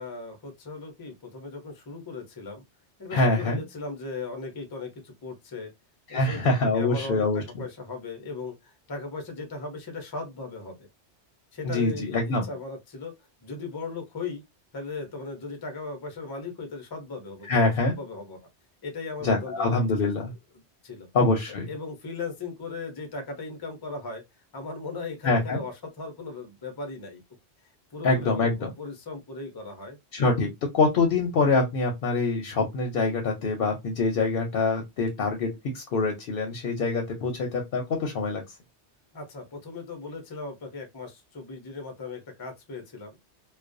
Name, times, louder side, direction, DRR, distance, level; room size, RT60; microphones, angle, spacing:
voice 1, 0.0-2.6 3.0-5.7 6.1-10.9 11.5-13.1 13.4-14.4 14.7-18.5 18.8-20.1 20.8-21.1 21.5-24.2 24.5-27.2 27.9-30.0 39.1-43.1, left 3 dB, 35° left, 0.3 m, -37 dB
voice 2, 3.1-3.6 6.1-7.4 11.6-12.5 17.5-17.9 19.2-20.3 21.1-21.7 25.2-25.6 28.0-28.7 30.1-38.4, left 3 dB, 60° left, 0.7 m, -25 dB
2.4 x 2.2 x 2.4 m
omnidirectional pair, 1.2 m